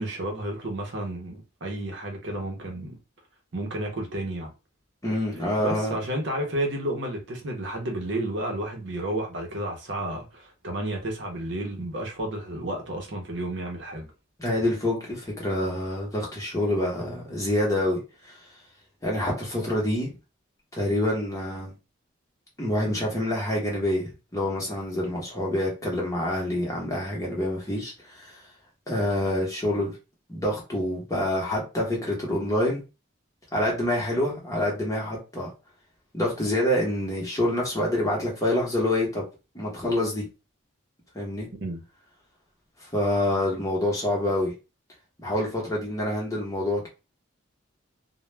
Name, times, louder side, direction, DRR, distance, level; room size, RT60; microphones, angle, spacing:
voice 1, 0.0-3.0 3.5-4.5 5.6-14.1 41.6-41.8, right 1 dB, 55° right, 0.7 m, -31 dB
voice 2, 5.0-6.0 14.4-18.4 19.0-20.1 20.7-21.7 22.6-28.4 28.9-29.9 30.3-32.8 33.5-35.5 36.1-39.2 39.5-40.2 41.1-41.5 42.8-44.5 45.2-46.9, left 1 dB, 15° left, 0.8 m, -27 dB
2.2 x 2.1 x 3.1 m
head